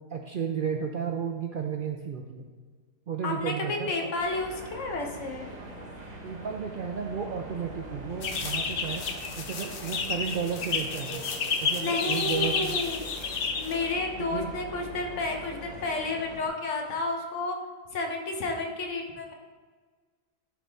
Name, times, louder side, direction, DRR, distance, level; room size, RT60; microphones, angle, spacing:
voice 1, 0.1-2.5 3.1-4.1 6.2-9.1 9.4-11.3 11.6-12.7 14.2-14.5, right 7 dB, 65° right, 3 dB, 0.5 m, -33 dB
voice 2, 3.2-5.5 11.8-13.0 13.6-17.6 17.9-19.3, left 3 dB, 70° left, 2 dB, 1.3 m, -31 dB
sound 1, 4.1-16.5, right 1 dB, 35° right, 1.0 m, -43 dB
sound 2, 8.2-13.9, left 5 dB, 55° left, 0.8 m, -31 dB
11.0 x 3.9 x 3.4 m, 1.5 s
omnidirectional pair, 1.3 m